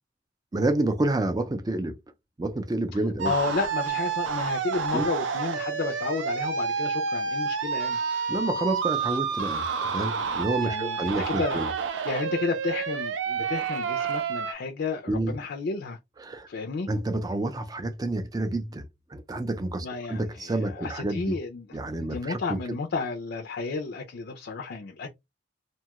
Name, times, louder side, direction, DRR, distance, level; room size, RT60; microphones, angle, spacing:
voice 1, 0.5-2.0 2.4-3.3 4.9-5.1 8.3-11.7 15.1-15.3 16.2-16.5 16.9-18.9 19.1-21.4 21.7-22.6, right 2 dB, 20° right, 0.4 m, -29 dB
voice 2, 3.2-8.0 10.6-11.6 12.0-16.0 16.5-16.9 19.8-25.1, left 4 dB, 60° left, 0.5 m, -32 dB
sound 1, 3.2-14.5, right 5 dB, 80° right, 0.5 m, -29 dB
2.7 x 2.3 x 2.9 m
head